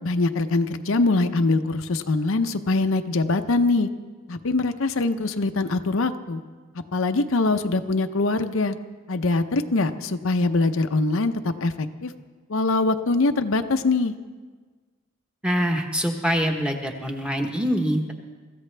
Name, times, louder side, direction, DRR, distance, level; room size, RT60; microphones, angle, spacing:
voice 1, 0.0-3.9 4.3-6.4 6.9-8.8 9.1-12.1 12.5-14.1, left 3 dB, 65° left, 7 dB, 0.7 m, -23 dB
voice 2, 15.4-18.1, equal, 5° right, 2 dB, 1.1 m, -24 dB
24.5 x 14.5 x 3.4 m, 1.4 s
head